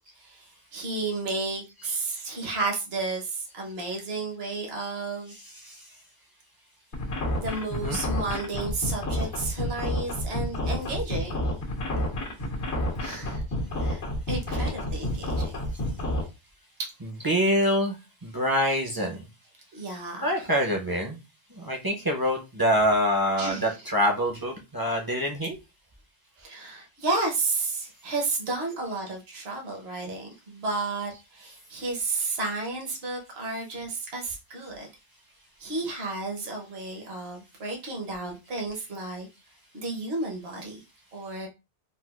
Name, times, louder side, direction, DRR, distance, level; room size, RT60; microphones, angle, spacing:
voice 1, 0.2-5.3 7.4-11.6 13.0-13.4 13.8-15.5 16.8-16.9 19.7-20.5 23.4-23.8 26.4-34.9 35.6-39.3 39.7-40.8 41.1-41.5, right 3 dB, 65° right, 1.2 m, -32 dB
voice 2, 5.5-5.9 7.7-8.0 14.7-14.8 17.0-18.0 18.2-19.2 19.9-21.2 21.5-25.6, equal, 25° right, 0.5 m, -26 dB
sound 1, 6.9-16.2, left 1 dB, 90° left, 1.5 m, -29 dB
4.1 x 2.3 x 2.3 m
omnidirectional pair, 1.1 m